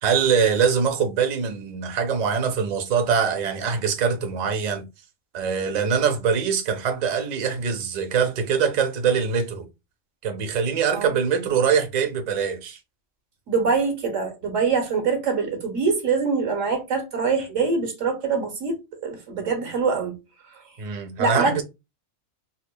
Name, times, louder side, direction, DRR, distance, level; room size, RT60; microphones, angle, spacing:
voice 1, 0.0-4.8 5.3-9.6 10.2-12.8 20.8-21.6, right 6 dB, 45° right, 0.6 m, -23 dB
voice 2, 13.5-20.1 20.5-20.6 21.2-21.6, right 4 dB, 85° right, 1.5 m, -24 dB
4.1 x 2.7 x 2.2 m
omnidirectional pair, 1.3 m